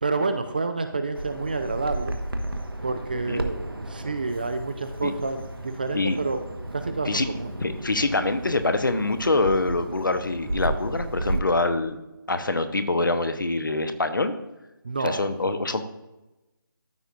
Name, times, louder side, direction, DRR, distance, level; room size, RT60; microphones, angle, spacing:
voice 1, 0.0-2.1 2.8-6.4 6.7-7.6 14.8-15.3, right 3 dB, 25° right, 8 dB, 0.4 m, -29 dB
Bird vocalization bird call bird song, 1.1-11.4, right 1 dB, 80° right, 1.2 m, -34 dB
voice 2, 7.6-12.0 12.3-14.4 15.0-15.8, left 2 dB, 60° left, 9 dB, 0.9 m, -25 dB
13.5 x 5.6 x 2.5 m, 0.99 s
figure-of-eight pair, 155°, 12 cm